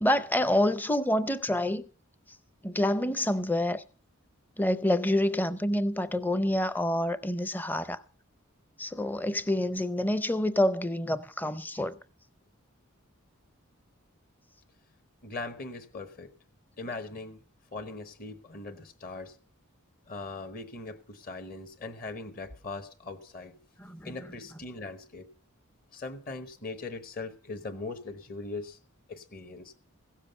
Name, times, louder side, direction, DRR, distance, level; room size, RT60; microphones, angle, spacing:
voice 1, 0.0-1.8 2.6-3.8 4.6-8.0 8.8-12.0 23.8-24.1, left 1 dB, 10° left, 0.5 m, -27 dB
voice 2, 15.2-16.3 16.8-17.4 17.7-19.4 20.1-23.6 24.0-25.3 25.9-28.8 29.1-29.7, left 3 dB, 45° left, 1.1 m, -40 dB
16.0 x 7.4 x 6.6 m
head